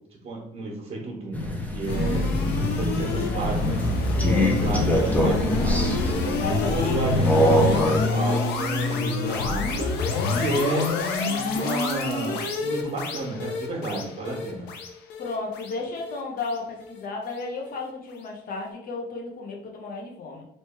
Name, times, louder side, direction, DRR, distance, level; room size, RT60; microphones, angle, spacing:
voice 1, 0.1-2.3 2.8-3.8 4.2-10.9 11.2-14.7, right 2 dB, 35° right, -5 dB, 1.3 m, -31 dB
Crow, 1.3-8.0, equal, 10° left, 0.7 m, -25 dB
sound 1, 1.9-17.0, left 4 dB, 80° left, 0.8 m, -27 dB
voice 2, 3.1-3.6 4.1-5.1 6.3-7.3 15.2-20.4, left 3 dB, 55° left, 0 dB, 1.1 m, -33 dB
3.1 x 3.1 x 4.5 m, 0.79 s
cardioid pair, 110°, 17 cm